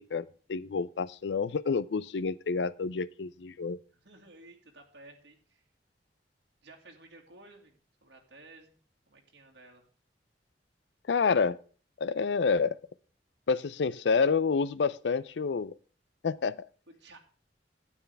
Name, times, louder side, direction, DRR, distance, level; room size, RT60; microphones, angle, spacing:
voice 1, 0.0-3.8 11.1-11.6 12.0-12.8 13.5-15.7 16.2-16.6, left 5 dB, 80° left, 0.5 m, -28 dB
voice 2, 3.9-5.6 6.6-8.8 9.1-9.9 16.9-17.2, right 2 dB, 80° right, 2.2 m, -54 dB
12.5 x 9.2 x 3.4 m
head